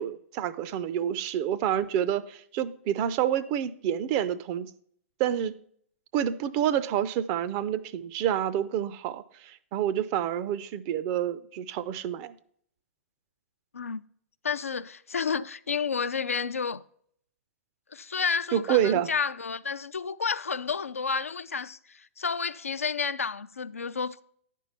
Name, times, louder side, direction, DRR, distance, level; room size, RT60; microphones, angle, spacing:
voice 1, 0.0-4.7 5.2-5.6 6.1-12.3 18.5-19.1, right 10 dB, 30° right, 0.4 m, -28 dB
voice 2, 14.4-16.8 17.9-24.2, left 5 dB, 75° left, 0.4 m, -31 dB
10.5 x 4.6 x 5.7 m
figure-of-eight pair, 110°, 8 cm